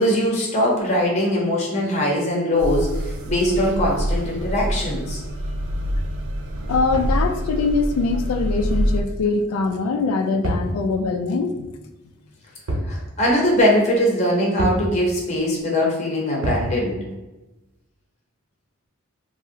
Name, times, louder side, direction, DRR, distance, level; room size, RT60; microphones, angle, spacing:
voice 1, 0.0-5.2 12.8-17.0, equal, 30° left, -2 dB, 0.6 m, -21 dB
sound 1, 2.6-9.0, equal, 70° right, 0.4 m, -25 dB
voice 2, 6.7-11.7, left 4 dB, 80° left, 7 dB, 0.3 m, -22 dB
sound 2, 10.4-10.8 12.7-13.0 13.3-13.4 14.6-14.9 16.4-16.7, equal, 90° right, 0.8 m, -25 dB
2.6 x 2.0 x 3.7 m, 1.0 s
head